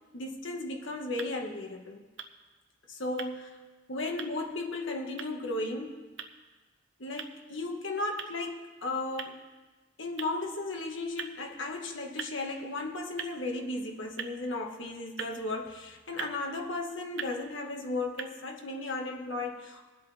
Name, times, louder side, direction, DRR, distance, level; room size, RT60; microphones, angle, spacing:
voice 1, 0.1-2.0 2.9-3.5 3.9-6.1 7.0-9.4 10.0-19.8, left 2 dB, 70° left, 1 dB, 1.7 m, -35 dB
sound 1, 0.9-18.2, right 7 dB, 65° right, 0.9 m, -47 dB
23.0 x 7.9 x 3.5 m, 1.3 s
head